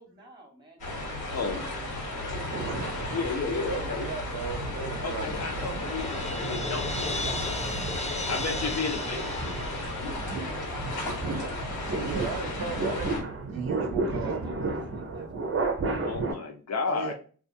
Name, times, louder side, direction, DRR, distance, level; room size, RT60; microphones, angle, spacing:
voice 1, 0.0-1.4 1.8-3.0 7.2-8.7 10.2-11.7 13.9-15.6, right 1 dB, 10° right, 2 dB, 1.0 m, -50 dB
sound 1, 0.8-13.2, left 2 dB, 90° left, 1.2 m, -34 dB
voice 2, 1.3-2.0 2.4-2.5 2.8-4.1 5.0-7.2 8.3-9.5 16.0-17.1, left 4 dB, 45° left, 3 dB, 0.8 m, -33 dB
sound 2, 2.3-3.7 4.2-16.3, right 3 dB, 35° right, 0.7 m, -34 dB
voice 3, 3.5-5.5 11.6-11.7 11.9-13.1 13.4-14.4 16.9-17.1, right 6 dB, 80° right, 4 dB, 0.5 m, -36 dB
Crash cymbal, 5.6-10.5, left 2 dB, 20° left, 0.5 m, -36 dB
2.5 x 2.4 x 2.5 m, 0.39 s
cardioid pair, 55°, 35 cm